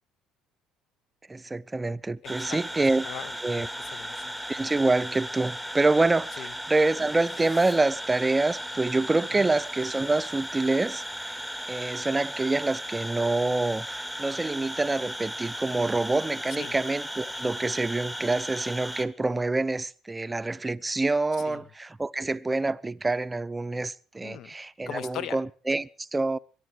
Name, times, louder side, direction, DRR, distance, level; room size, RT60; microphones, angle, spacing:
voice 1, 1.3-3.1 3.4-3.7 4.5-11.3 11.7-26.4, right 2 dB, 20° right, 0.7 m, -26 dB
voice 2, 2.2-2.6 3.0-4.3 6.4-6.5 9.4-9.5 16.6-16.7 21.5-21.6 24.2-24.5 24.9-25.4, left 9 dB, 60° left, 1.1 m, -39 dB
sound 1, 2.2-19.1, equal, 5° left, 1.4 m, -36 dB
sound 2, 6.6-8.8, left 2 dB, 35° left, 6.4 m, -54 dB
22.0 x 11.5 x 4.9 m
hypercardioid pair, 55°, 0 cm